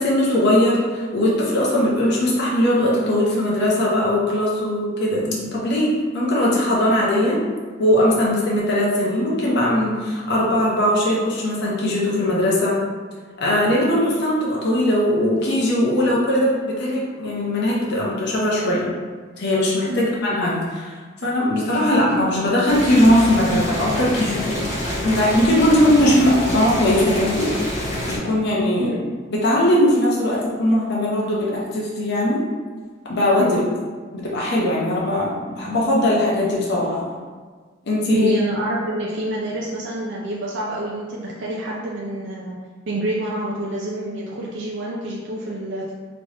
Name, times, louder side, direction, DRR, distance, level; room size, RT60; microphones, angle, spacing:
voice 1, 0.0-7.4 7.8-12.8 13.4-18.9 19.4-21.0 21.2-24.6 25.0-27.5 28.1-28.9 29.3-32.4 33.1-33.6 34.1-37.1 37.9-38.3, left 1 dB, 60° left, -5 dB, 0.7 m, -20 dB
Boiling, 22.7-28.2, left 1 dB, 40° left, 1.3 m, -27 dB
voice 2, 38.1-42.6 42.9-45.9, right 1 dB, 65° right, -4 dB, 0.5 m, -27 dB
3.3 x 3.0 x 2.7 m, 1.5 s
head